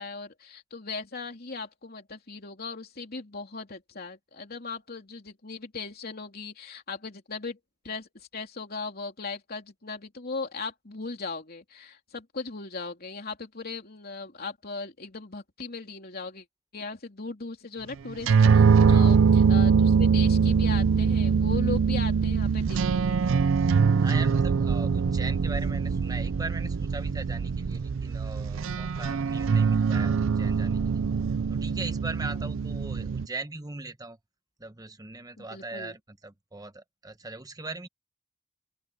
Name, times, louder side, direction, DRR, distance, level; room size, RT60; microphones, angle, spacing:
voice 1, 0.0-7.6 7.8-16.4 16.7-23.4 35.4-35.9, left 4 dB, 50° left, 3.1 m, -38 dB
sound 1, 18.1-33.3, right 5 dB, 75° right, 0.4 m, -23 dB
voice 2, 24.0-34.2 34.6-37.9, right 3 dB, 20° right, 1.2 m, -40 dB
open air
head